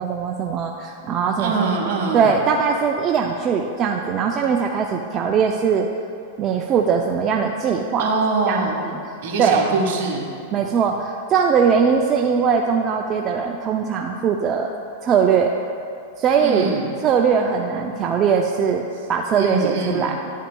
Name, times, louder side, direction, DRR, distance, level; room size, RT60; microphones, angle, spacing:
voice 1, 0.0-1.8 2.1-5.9 6.4-8.1 8.5-9.0 9.4-9.8 10.5-14.7 15.0-15.5 16.2-16.7 17.0-18.8 19.1-20.2, right 6 dB, 30° right, 1 dB, 0.4 m, -20 dB
voice 2, 1.4-2.3 6.4-6.5 8.0-8.9 9.2-10.2 16.4-16.9 19.3-20.1, right 3 dB, 65° right, 0 dB, 1.5 m, -23 dB
11.0 x 7.3 x 2.3 m, 2.4 s
hypercardioid pair, 125°, 0 cm